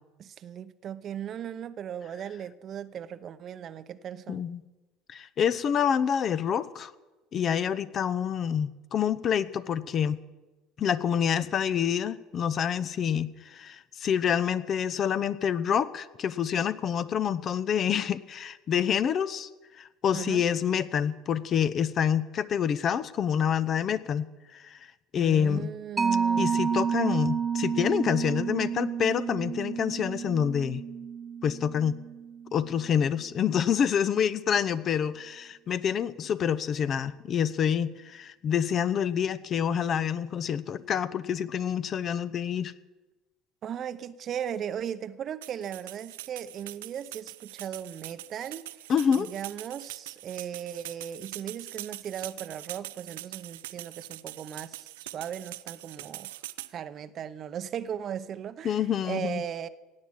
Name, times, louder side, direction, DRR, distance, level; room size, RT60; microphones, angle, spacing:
voice 1, 0.2-4.4 20.1-20.4 25.1-26.6 43.6-48.8 49.1-56.4 56.7-59.7, right 9 dB, 45° right, 0.8 m, -37 dB
voice 2, 4.3-4.6 5.1-6.9 7.3-10.2 10.8-19.5 19.8-24.8 25.1-25.7 26.4-30.8 31.4-32.0 32.5-42.7 48.9-49.3 58.6-59.4, left 8 dB, 45° left, 0.8 m, -27 dB
Mallet percussion, 26.0-33.0, right 6 dB, 25° right, 0.9 m, -30 dB
sound 1, 45.4-56.7, right 16 dB, 75° right, 0.5 m, -43 dB
17.0 x 8.7 x 7.6 m
hypercardioid pair, 70°, 0 cm